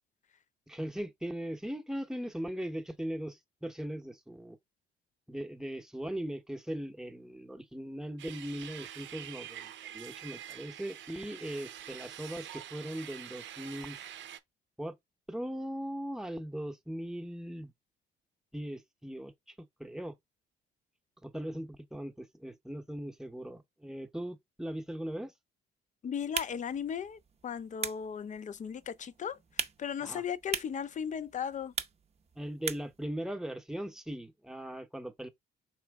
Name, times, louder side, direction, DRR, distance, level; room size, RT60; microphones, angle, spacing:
voice 1, 0.7-4.6 5.3-14.0 14.8-14.9 15.3-17.7 18.5-19.5 19.8-20.2 21.2-25.3 30.0-30.2 32.4-35.3, equal, ahead, 0.8 m, -39 dB
sound 1, 8.2-14.4, right 11 dB, 75° right, 0.7 m, -46 dB
voice 2, 26.0-29.4 29.8-31.7, left 8 dB, 40° left, 0.5 m, -36 dB
sound 2, 26.2-33.0, right 6 dB, 30° right, 0.6 m, -41 dB
4.3 x 3.1 x 3.4 m
cardioid pair, 90°, 20 cm